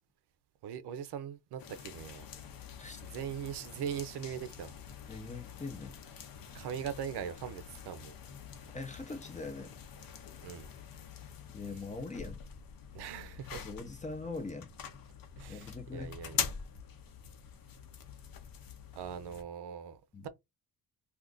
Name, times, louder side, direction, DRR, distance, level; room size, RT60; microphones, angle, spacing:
voice 1, 0.6-2.3 3.0-4.7 6.5-8.2 10.4-10.7 12.9-13.7 15.4-16.5 19.0-20.3, right 8 dB, 70° right, 0.6 m, -41 dB
sound 1, 1.6-19.4, left 7 dB, 55° left, 0.7 m, -45 dB
voice 2, 5.1-6.0 8.7-9.7 11.5-12.4 13.5-14.7 15.5-16.2 20.1-20.3, left 3 dB, 20° left, 0.6 m, -42 dB
2.5 x 2.4 x 3.6 m
cardioid pair, 125°, 41 cm